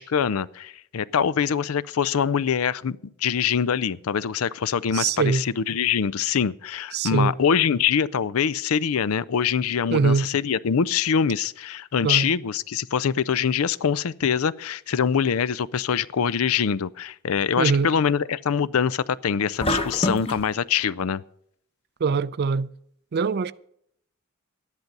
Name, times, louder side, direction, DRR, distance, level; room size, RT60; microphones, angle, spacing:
voice 1, 0.0-21.2, left 7 dB, 75° left, 0.5 m, -24 dB
voice 2, 4.9-5.4 6.9-7.3 9.9-10.3 12.0-12.3 17.6-17.9 22.0-22.7 23.1-23.5, right 5 dB, 50° right, 0.4 m, -22 dB
sound 1, 19.6-20.5, left 1 dB, 25° left, 1.0 m, -25 dB
13.0 x 10.5 x 5.3 m
head